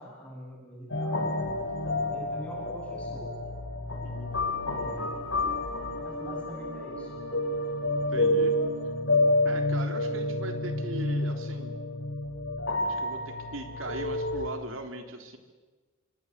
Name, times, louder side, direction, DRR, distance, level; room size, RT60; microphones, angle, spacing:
voice 1, 0.0-1.4 2.0-3.3 4.7-5.1 6.0-7.3, left 1 dB, 5° left, -3 dB, 7.7 m, -44 dB
sound 1, 0.9-14.5, left 2 dB, 70° left, 5.6 m, -29 dB
voice 2, 4.0-4.3 8.1-8.6 9.4-11.7 12.8-15.4, right 2 dB, 85° right, 6 dB, 3.5 m, -39 dB
26.5 x 25.0 x 8.2 m, 1.3 s
head